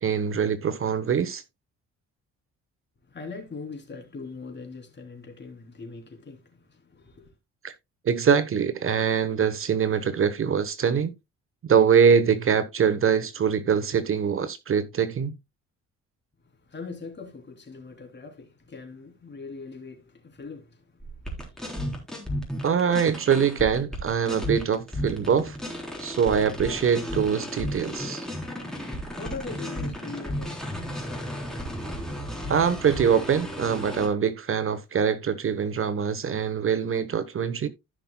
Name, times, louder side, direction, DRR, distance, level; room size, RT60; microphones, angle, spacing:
voice 1, 0.0-1.4 7.6-7.7 8.0-11.1 11.6-15.3 22.6-25.6 26.0-28.3 32.5-37.7, right 7 dB, 45° right, 1.0 m, -23 dB
voice 2, 3.0-7.3 16.4-22.7 29.2-31.1, left 4 dB, 35° left, 3.3 m, -42 dB
sound 1, 21.0-34.1, equal, ahead, 3.6 m, -34 dB
15.5 x 6.0 x 2.2 m
cardioid pair, 90°, 30 cm